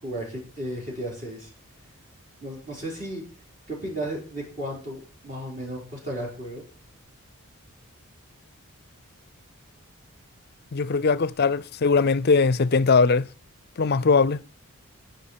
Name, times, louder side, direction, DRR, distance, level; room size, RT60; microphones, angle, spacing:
voice 1, 0.0-1.5 2.4-3.2 3.7-6.6, right 1 dB, 35° right, 5.2 m, -34 dB
voice 2, 10.7-13.3 13.8-14.4, left 4 dB, 45° left, 0.5 m, -20 dB
14.0 x 5.9 x 6.8 m
head